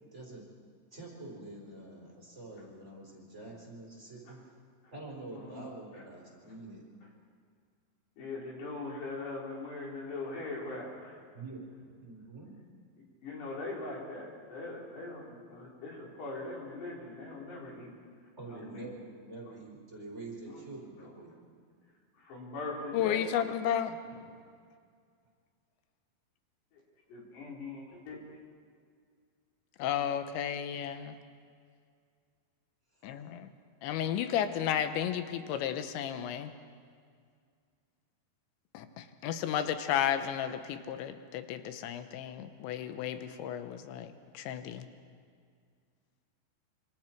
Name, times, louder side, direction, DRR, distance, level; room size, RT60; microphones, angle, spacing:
voice 1, 0.1-0.4 0.9-4.4 4.9-6.8 11.3-11.7 12.0-12.5 18.4-21.6 24.1-24.2, right 2 dB, 15° right, -3 dB, 4.2 m, -46 dB
voice 2, 8.2-11.2 13.2-17.9 18.5-18.9 20.5-20.6 22.2-23.2 27.1-28.2, left 2 dB, 70° left, -3 dB, 6.3 m, -41 dB
voice 3, 22.9-24.0 29.8-31.2 33.0-33.5 33.8-36.5 38.7-44.8, left 9 dB, 90° left, 9 dB, 3.2 m, -33 dB
26.5 x 26.5 x 4.6 m, 2.1 s
omnidirectional pair, 5.1 m